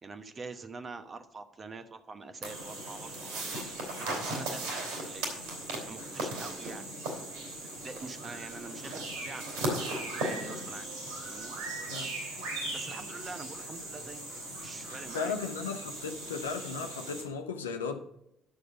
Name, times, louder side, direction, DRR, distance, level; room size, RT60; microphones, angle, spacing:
voice 1, 0.0-3.6 4.0-5.3 5.9-12.1 12.7-14.2 14.6-15.4, right 4 dB, 35° right, 9 dB, 1.1 m, -45 dB
sound 1, 2.4-17.2, right 1 dB, 75° right, 3.1 m, -37 dB
voice 2, 14.9-18.0, left 5 dB, 85° left, 6 dB, 0.8 m, -36 dB
10.5 x 6.6 x 5.2 m, 0.81 s
figure-of-eight pair, 50°, 0 cm